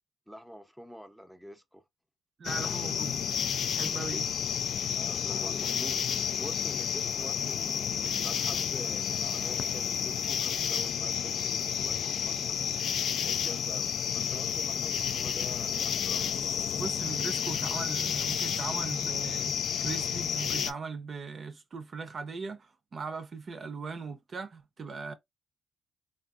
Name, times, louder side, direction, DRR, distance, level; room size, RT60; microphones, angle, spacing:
voice 1, 0.3-1.8 4.9-6.0 6.4-12.6 13.2-16.4, equal, ahead, 0.7 m, -46 dB
sound 1, 2.4-20.7, left 8 dB, 65° left, 0.4 m, -31 dB
voice 2, 2.4-3.2 3.7-4.3 16.8-25.1, right 4 dB, 45° right, 0.6 m, -39 dB
3.5 x 2.4 x 2.4 m
cardioid pair, 90°, 0 cm